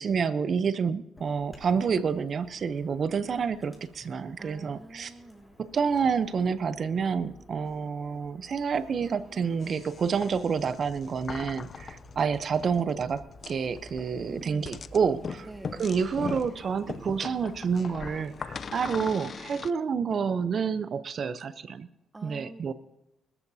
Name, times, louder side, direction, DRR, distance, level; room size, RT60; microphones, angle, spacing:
voice 1, 0.0-5.1 5.6-15.5 15.8-21.9 22.2-22.7, right 6 dB, 50° right, 14 dB, 0.7 m, -28 dB
Chirp tweet / Buzz, 1.1-19.0, equal, 10° left, 5.9 m, -53 dB
voice 2, 4.4-5.6 14.2-14.7 15.4-15.9 22.1-22.7, right 2 dB, 20° right, 12 dB, 0.9 m, -46 dB
sound 1, 9.6-19.7, left 6 dB, 45° left, 0.6 m, -41 dB
25.0 x 14.0 x 2.8 m, 0.92 s
cardioid pair, 90°, 0 cm